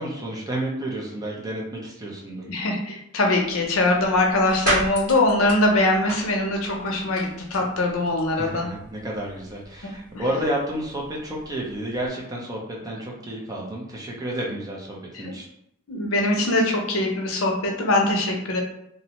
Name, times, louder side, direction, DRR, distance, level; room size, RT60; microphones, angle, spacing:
voice 1, 0.0-2.5 8.4-15.4, right 1 dB, 15° right, -2 dB, 0.5 m, -31 dB
voice 2, 2.5-8.7 9.8-10.2 15.1-15.3 15.9-18.6, left 2 dB, 80° left, 1 dB, 0.6 m, -22 dB
sound 1, 3.4-12.1, right 1 dB, 45° right, 1.5 m, -35 dB
2.6 x 2.0 x 2.8 m, 0.75 s
head